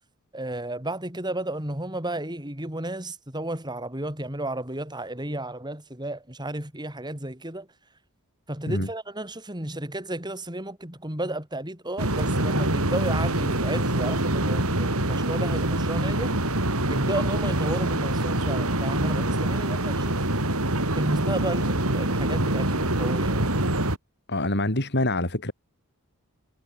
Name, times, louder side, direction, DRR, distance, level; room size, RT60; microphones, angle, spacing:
voice 1, 0.3-7.7 8.5-16.4 16.9-20.3 20.9-23.5, right 1 dB, 20° right, 5.2 m, -32 dB
sound 1, 12.0-24.0, right 1 dB, 75° right, 5.8 m, -25 dB
voice 2, 24.3-25.5, left 1 dB, 50° left, 5.0 m, -25 dB
head